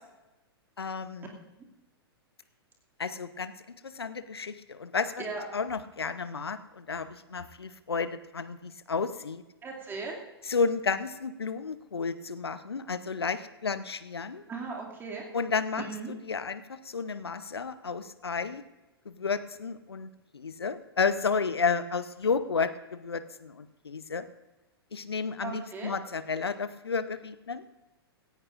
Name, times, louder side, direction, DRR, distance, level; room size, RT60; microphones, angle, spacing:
voice 1, 0.8-1.3 3.0-3.5 3.8-5.2 5.5-9.4 10.5-14.4 15.3-18.6 19.1-24.3 24.9-27.6, left 5 dB, 75° left, 13 dB, 0.8 m, -32 dB
voice 2, 9.6-10.2 14.5-15.2 15.8-16.1 25.4-25.9, right 4 dB, 15° right, -1 dB, 2.5 m, -37 dB
17.5 x 15.5 x 2.6 m, 1.0 s
figure-of-eight pair, 105°, 13 cm